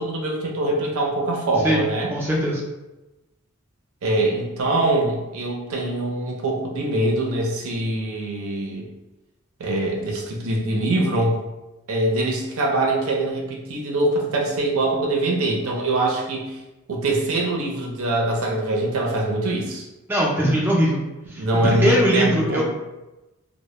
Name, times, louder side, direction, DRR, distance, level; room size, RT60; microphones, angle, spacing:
voice 1, 0.0-2.1 4.0-8.8 9.6-11.3 11.9-16.6 16.9-19.9 21.4-22.6, right 2 dB, 75° right, -1 dB, 0.5 m, -23 dB
voice 2, 1.6-2.6 20.1-21.0 21.3-22.6, equal, 10° right, -3 dB, 0.3 m, -21 dB
2.0 x 2.0 x 3.0 m, 1.0 s
head